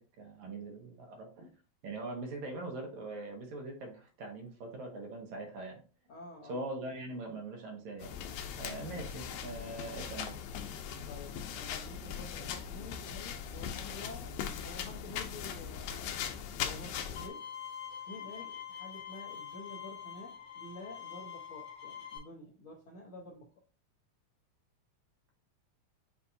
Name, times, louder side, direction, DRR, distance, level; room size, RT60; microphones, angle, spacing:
voice 1, 0.0-1.5 1.8-5.8 6.5-8.1 8.6-10.3, right 2 dB, 75° right, 2 dB, 2.3 m, -42 dB
voice 2, 6.1-6.6 9.5-9.8 11.1-16.1 16.6-17.5 18.1-23.5, left 2 dB, 65° left, -4 dB, 1.3 m, -49 dB
sound 1, 8.0-17.3, left 8 dB, 85° left, 2.1 m, -40 dB
Bowed string instrument, 17.2-22.2, left 8 dB, 45° left, 1.6 m, -45 dB
7.0 x 2.6 x 2.6 m, 0.36 s
omnidirectional pair, 3.3 m